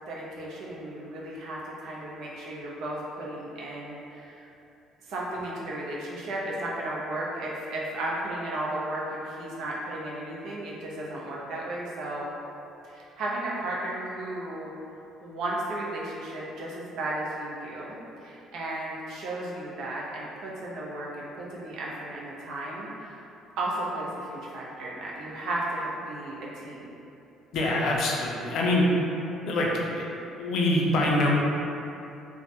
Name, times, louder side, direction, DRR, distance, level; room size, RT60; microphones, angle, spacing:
voice 1, 0.1-4.5 5.0-12.3 12.8-14.7 15.2-23.2 23.6-26.9, right 1 dB, 70° right, -5 dB, 0.5 m, -34 dB
voice 2, 27.5-28.8 29.5-29.7 30.0-30.1 30.4-31.3, left 1 dB, 60° left, -2 dB, 0.4 m, -24 dB
2.2 x 2.0 x 2.8 m, 2.8 s
cardioid pair, 115°, 0 cm